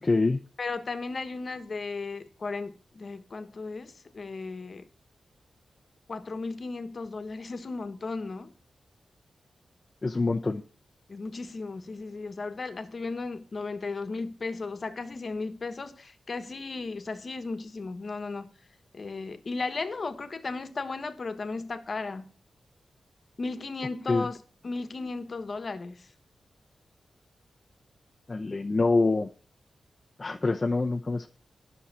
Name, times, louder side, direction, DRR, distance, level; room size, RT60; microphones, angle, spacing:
voice 1, 0.0-0.4 10.0-10.6 24.1-24.3 28.3-29.3 30.2-31.3, left 3 dB, 30° left, 0.7 m, -25 dB
voice 2, 0.6-4.8 6.1-8.5 11.1-18.5 18.9-22.3 23.4-24.4 24.6-26.1, left 3 dB, 45° left, 1.3 m, -35 dB
10.5 x 6.4 x 7.0 m
wide cardioid pair, 120°, 0 cm